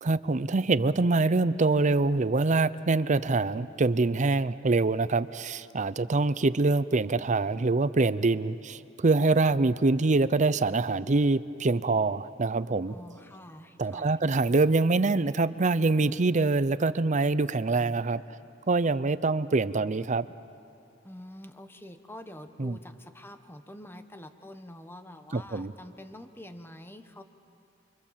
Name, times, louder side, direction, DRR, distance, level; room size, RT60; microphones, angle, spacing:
voice 1, 0.0-12.9 13.8-18.2 18.7-20.3 22.6-22.8 25.3-25.7, right 3 dB, 40° right, 15 dB, 0.6 m, -25 dB
voice 2, 12.9-14.2 21.0-27.2, left 1 dB, 10° left, 8 dB, 1.2 m, -46 dB
29.5 x 24.5 x 7.5 m, 2.5 s
head